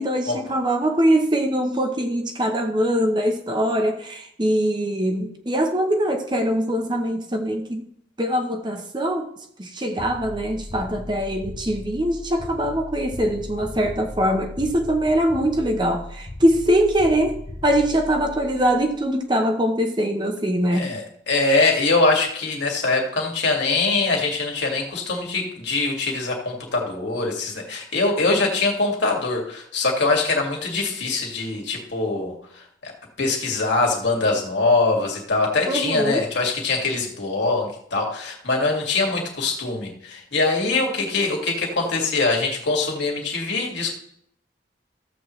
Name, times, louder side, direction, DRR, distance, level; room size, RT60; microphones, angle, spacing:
voice 1, 0.0-7.9 8.2-9.3 9.6-17.4 17.6-20.9 35.7-36.2, equal, 25° right, 0.8 m, -22 dB
sound 1, 10.0-19.1, left 1 dB, 30° left, 0.7 m, -37 dB
voice 2, 20.7-32.9 33.2-43.9, left 3 dB, 70° left, 2.2 m, -23 dB
14.5 x 7.5 x 3.2 m
head